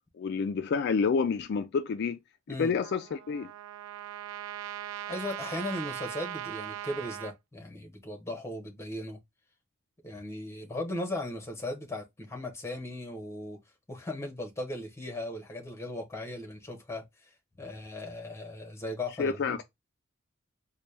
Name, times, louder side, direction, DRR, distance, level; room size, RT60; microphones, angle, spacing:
voice 1, 0.1-2.2 2.5-3.5 19.2-19.6, left 5 dB, 55° left, 0.3 m, -29 dB
Trumpet, 2.8-7.3, right 12 dB, 75° right, 0.3 m, -39 dB
voice 2, 5.1-9.2 10.0-13.6 13.9-17.0 17.6-19.6, left 1 dB, 15° left, 1.0 m, -37 dB
4.1 x 2.2 x 3.3 m
head